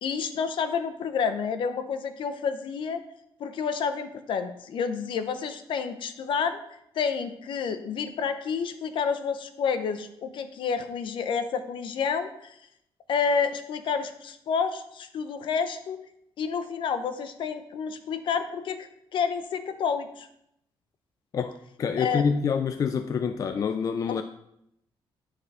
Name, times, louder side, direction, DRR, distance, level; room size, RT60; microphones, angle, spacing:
voice 1, 0.0-3.0 3.4-6.6 6.9-12.5 13.1-16.0 16.4-20.3 22.0-22.2, left 6 dB, 65° left, 10 dB, 0.7 m, -29 dB
voice 2, 21.3-24.2, left 6 dB, 40° left, 9 dB, 0.4 m, -27 dB
9.0 x 4.4 x 4.9 m, 0.77 s
cardioid pair, 140°, 9 cm